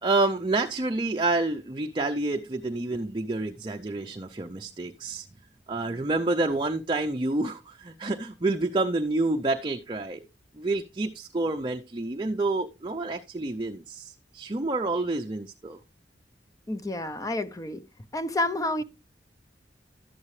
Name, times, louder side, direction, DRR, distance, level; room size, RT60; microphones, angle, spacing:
voice 1, 0.0-5.3 5.7-10.3 10.5-15.8, right 2 dB, 25° right, 0.6 m, -28 dB
voice 2, 16.7-17.8 18.1-18.8, left 2 dB, 20° left, 0.6 m, -29 dB
12.0 x 8.4 x 3.2 m
head